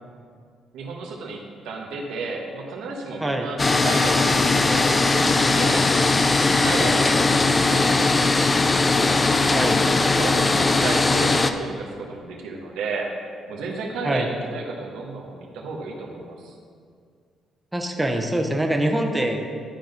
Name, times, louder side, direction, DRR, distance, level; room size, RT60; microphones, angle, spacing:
voice 1, 0.7-5.9 6.5-8.5 9.4-13.1 13.5-16.6, right 3 dB, 90° right, -1 dB, 1.2 m, -33 dB
sound 1, 3.6-11.5, left 3 dB, 25° left, 0.4 m, -19 dB
voice 2, 17.7-19.4, right 1 dB, 10° right, 2 dB, 0.9 m, -24 dB
11.5 x 4.0 x 5.2 m, 2.1 s
cardioid pair, 90°, 0 cm